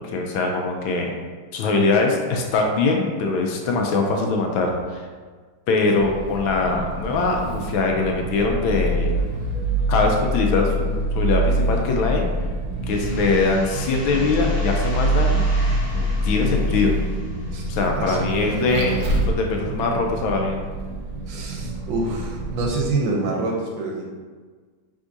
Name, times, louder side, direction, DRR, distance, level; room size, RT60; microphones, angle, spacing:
voice 1, 0.1-1.1 1.5-5.0 5.7-9.2 9.9-12.3 12.9-15.4 15.9-16.9 17.7-18.9 19.2-20.7, left 3 dB, 75° left, 1 dB, 1.3 m, -22 dB
Vehicle, 6.0-22.9, right 1 dB, 90° right, 0.8 m, -25 dB
sound 1, 12.9-18.4, left 1 dB, 40° left, 1.3 m, -39 dB
voice 2, 12.9-13.3 17.5-17.6 18.0-18.3 18.7-19.1 21.3-24.1, right 3 dB, 70° right, -1 dB, 1.3 m, -27 dB
5.0 x 3.5 x 2.6 m, 1.5 s
omnidirectional pair, 2.3 m